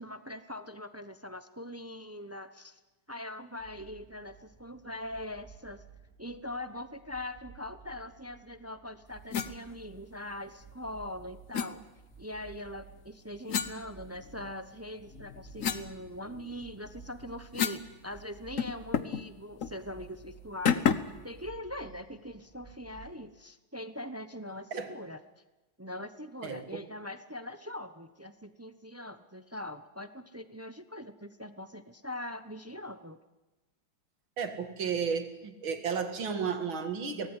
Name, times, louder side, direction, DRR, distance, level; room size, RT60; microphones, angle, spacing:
voice 1, 0.0-2.8 3.1-5.8 6.2-11.8 12.2-20.9 21.2-25.2 25.8-33.2, left 1 dB, 25° right, 11 dB, 0.3 m, -42 dB
sound 1, 3.6-23.1, right 6 dB, ahead, 4.7 m, -55 dB
sound 2, 9.3-9.5 11.5-11.7 13.5-14.5 15.0-17.9 18.2-18.3 18.6-19.2 19.6-19.8 20.7-21.2, left 7 dB, 50° left, 1.2 m, -32 dB
voice 2, 26.4-26.8 34.4-37.3, right 6 dB, 80° right, 7 dB, 2.9 m, -33 dB
23.5 x 18.5 x 9.9 m, 1.1 s
omnidirectional pair, 2.2 m